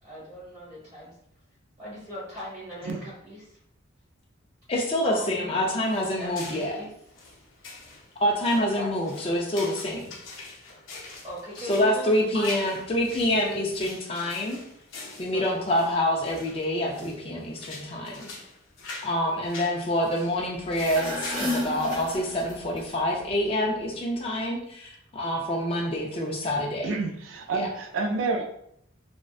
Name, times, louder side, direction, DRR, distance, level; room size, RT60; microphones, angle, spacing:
voice 1, 0.0-1.1 1.8-3.6 5.0-5.6 5.9-6.9 8.5-8.9 11.2-12.8 15.3-15.7 19.2-19.3 20.0-20.4, equal, 20° right, -9 dB, 1.1 m, -40 dB
voice 2, 4.7-6.8 8.2-10.2 11.7-14.6 15.2-18.3 19.0-26.9 27.6-27.7, left 1 dB, 30° left, -1 dB, 0.3 m, -26 dB
sound 1, 5.8-21.5, left 3 dB, 80° left, 0.6 m, -44 dB
sound 2, 20.6-22.8, left 1 dB, ahead, 1.1 m, -32 dB
voice 3, 26.8-28.5, right 3 dB, 75° right, 4 dB, 0.4 m, -28 dB
2.5 x 2.1 x 2.3 m, 0.72 s
head